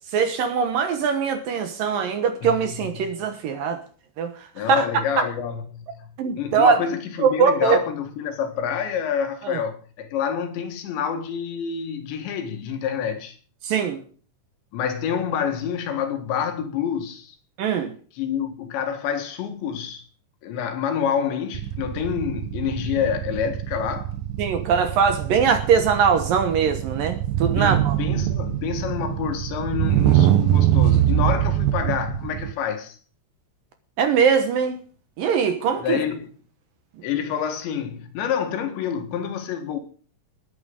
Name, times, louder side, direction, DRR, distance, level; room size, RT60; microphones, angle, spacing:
voice 1, 0.1-3.8 4.2-4.9 6.2-6.8 7.2-7.8 9.4-9.6 13.6-14.0 17.6-17.9 24.4-28.0 34.0-34.8 35.2-36.0, right 6 dB, 65° right, 2.5 m, -21 dB
voice 2, 4.6-6.1 6.4-13.4 14.7-17.4 18.2-20.0 20.4-24.1 27.5-33.0 35.8-36.3 37.0-39.8, left 8 dB, 80° left, 4.1 m, -27 dB
sound 1, 21.5-32.5, right 12 dB, 80° right, 2.0 m, -23 dB
20.0 x 9.0 x 5.3 m
omnidirectional pair, 5.1 m